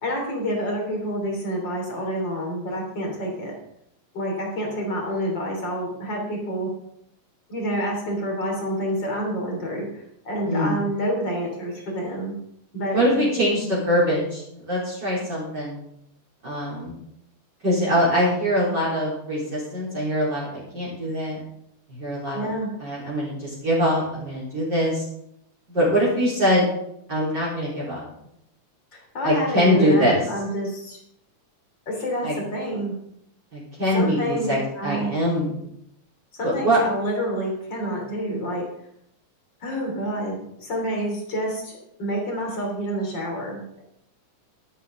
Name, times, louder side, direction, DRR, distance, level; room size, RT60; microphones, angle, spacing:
voice 1, 0.0-3.5 4.1-6.7 7.5-12.4 12.7-13.1 22.3-22.7 28.9-31.0 31.9-33.0 33.9-35.2 36.4-38.6 39.6-41.7 42.0-43.8, equal, 35° left, 0 dB, 3.8 m, -28 dB
voice 2, 10.5-10.8 12.9-15.8 16.4-17.0 17.6-21.4 21.9-22.5 22.8-25.0 25.7-26.7 27.1-28.0 29.2-30.2 32.2-32.4 33.5-34.6 34.8-35.5 36.4-36.8, equal, 35° right, -6 dB, 4.3 m, -23 dB
12.0 x 12.0 x 3.8 m, 0.75 s
omnidirectional pair, 3.5 m